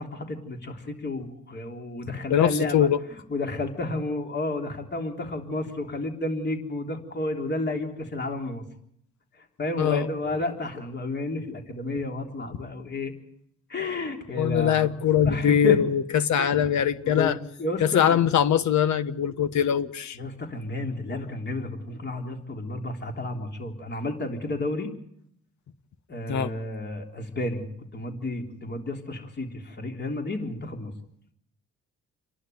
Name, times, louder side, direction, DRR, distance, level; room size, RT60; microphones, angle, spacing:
voice 1, 0.0-8.6 9.4-13.1 13.7-15.0 15.2-15.8 16.4-16.7 17.0-18.2 20.1-24.9 26.1-27.6 27.9-30.9, left 2 dB, 35° left, 3 dB, 3.7 m, -31 dB
voice 2, 2.1-3.0 9.8-10.1 14.4-17.3 17.8-20.2 26.3-26.5, left 9 dB, 70° left, 13 dB, 1.3 m, -22 dB
28.5 x 11.5 x 9.5 m, 0.72 s
cardioid pair, 90°, 30 cm